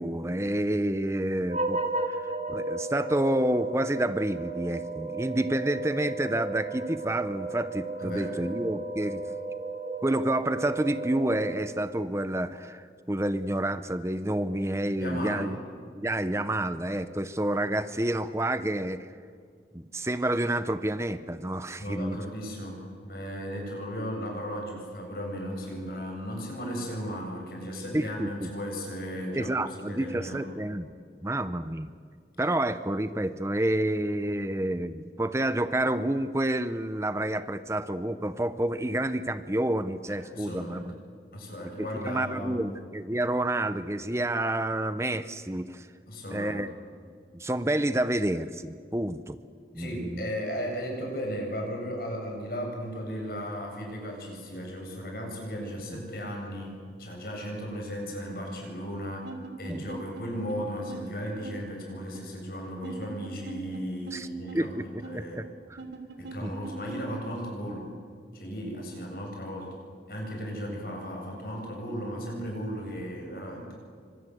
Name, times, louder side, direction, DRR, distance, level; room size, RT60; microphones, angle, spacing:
voice 1, 0.0-1.8 2.1-9.2 10.0-15.6 15.9-19.1 19.7-22.2 27.9-28.5 29.3-30.9 31.2-31.9 32.4-40.9 41.8-45.9 46.3-46.7 47.3-49.4 49.7-50.3 59.7-59.8 64.1-64.3 64.5-65.8 66.4-66.5, right 1 dB, 15° right, 12 dB, 0.7 m, -29 dB
sound 1, 1.5-12.0, right 3 dB, 40° right, 2.4 m, -34 dB
voice 2, 8.0-8.3 15.0-15.5 21.8-30.4 40.1-40.8 41.3-42.6 46.1-46.6 49.8-59.3 59.6-65.4 66.2-67.9 68.3-69.8 70.1-73.7, equal, 55° left, 0 dB, 7.8 m, -36 dB
sound 2, 59.2-60.2 60.5-60.6 60.9-61.0 61.4-61.5 62.1-62.4 62.8-63.8 64.1-64.2 64.5-64.6 65.0-65.1 65.8-67.2, right 3 dB, 90° right, 3.0 m, -42 dB
29.0 x 25.5 x 7.9 m, 2.1 s
head